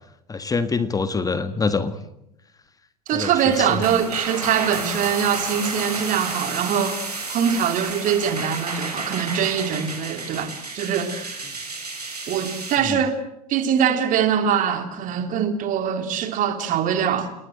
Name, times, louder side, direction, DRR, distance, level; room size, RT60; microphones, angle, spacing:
voice 1, 0.3-1.9 3.1-3.8 12.8-13.0, left 4 dB, 20° left, 1.6 m, -25 dB
voice 2, 3.1-7.0 7.3-11.4 12.3-13.2 13.5-17.3, right 8 dB, 40° right, 3.1 m, -23 dB
sound 1, 3.1-12.8, right 3 dB, 85° right, 5.0 m, -32 dB
29.5 x 20.0 x 7.7 m
figure-of-eight pair, 70°, 20 cm